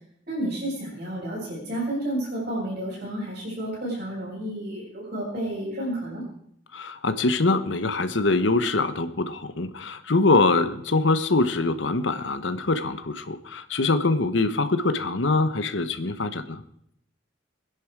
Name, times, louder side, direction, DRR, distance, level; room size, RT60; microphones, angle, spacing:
voice 1, 0.3-6.2, right 1 dB, 50° right, -9 dB, 6.2 m, -31 dB
voice 2, 6.7-16.6, left 3 dB, 70° left, 10 dB, 1.1 m, -24 dB
22.5 x 10.5 x 4.7 m, 0.71 s
head